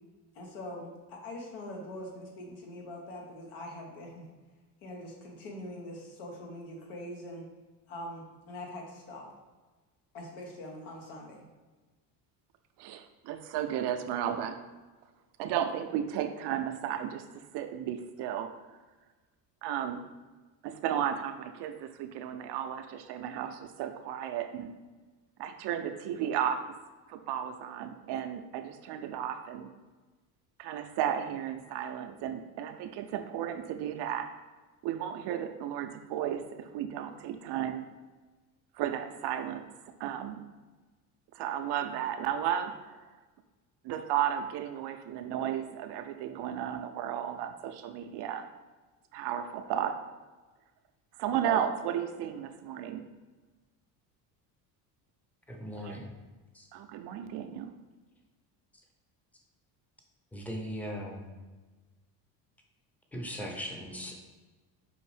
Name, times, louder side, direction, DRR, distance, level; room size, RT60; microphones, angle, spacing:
voice 1, 0.3-4.3 4.8-7.5 7.9-9.3 10.1-11.4, left 1 dB, 75° left, 0 dB, 1.2 m, -43 dB
voice 2, 12.8-14.6 15.4-18.5 19.6-20.0 20.6-24.7 25.4-26.7 27.1-29.7 30.6-34.3 34.8-37.8 38.7-40.4 41.3-43.0 43.8-48.5 49.1-50.0 51.2-53.0 55.8-56.0 56.7-57.7, right 9 dB, 55° right, 7 dB, 0.5 m, -34 dB
voice 3, 55.5-56.1 56.5-56.7 60.3-61.4 63.1-64.2, equal, 5° left, 1 dB, 0.6 m, -39 dB
5.4 x 2.5 x 3.3 m, 1.3 s
supercardioid pair, 75°, 49 cm